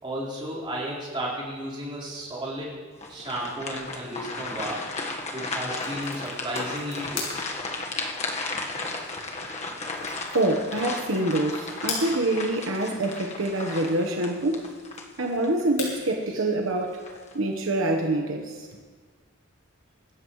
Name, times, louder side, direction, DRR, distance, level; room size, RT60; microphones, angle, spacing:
voice 1, 0.0-2.8 3.1-4.8 5.3-7.3 8.5-8.6, right 1 dB, 25° right, -7 dB, 4.5 m, -33 dB
sound 1, 3.0-15.6 16.1-16.2 16.8-17.3, left 3 dB, 35° left, 1.4 m, -34 dB
sound 2, 5.6-19.1, left 4 dB, 80° left, 5.7 m, -43 dB
voice 2, 10.3-14.7 15.2-17.0 17.3-18.7, right 1 dB, 75° right, 2 dB, 1.2 m, -26 dB
25.0 x 13.5 x 3.2 m, 1.5 s
head